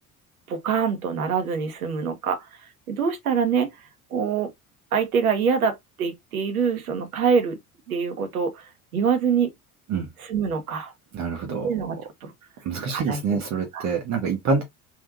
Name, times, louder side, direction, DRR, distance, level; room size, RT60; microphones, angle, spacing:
voice 1, 0.5-2.5 2.9-3.7 4.1-4.5 4.9-7.6 7.9-9.5 10.2-10.9 11.6-12.3 12.9-13.4 13.7-13.9, right 6 dB, 75° right, 1.0 m, -25 dB
voice 2, 11.1-11.7 12.6-14.6, right 5 dB, 40° right, 1.1 m, -26 dB
3.6 x 2.7 x 2.5 m
figure-of-eight pair, 60°, 44 cm